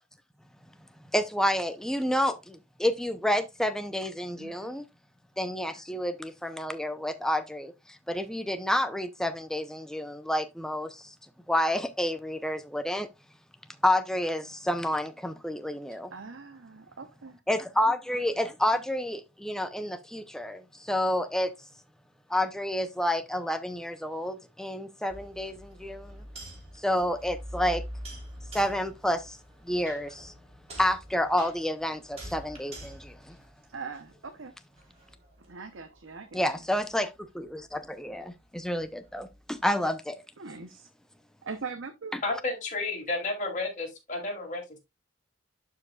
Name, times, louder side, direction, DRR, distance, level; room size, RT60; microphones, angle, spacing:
voice 1, 1.1-4.8 5.4-11.1 11.5-13.1 13.8-16.1 17.5-21.5 22.3-26.2 26.8-27.8 28.5-29.4 29.6-30.3 30.8-33.4 36.3-40.2 42.1-42.2, left 1 dB, 5° left, 0.6 m, -29 dB
voice 2, 4.4-4.7 16.1-17.4 33.7-34.5 35.5-36.4 40.4-40.9 41.4-42.2, right 4 dB, 70° right, 0.8 m, -41 dB
sound 1, 25.1-34.3 34.8-39.6, equal, 30° right, 3.2 m, -45 dB
voice 3, 42.2-44.8, left 3 dB, 40° left, 2.7 m, -32 dB
11.5 x 5.0 x 2.3 m
head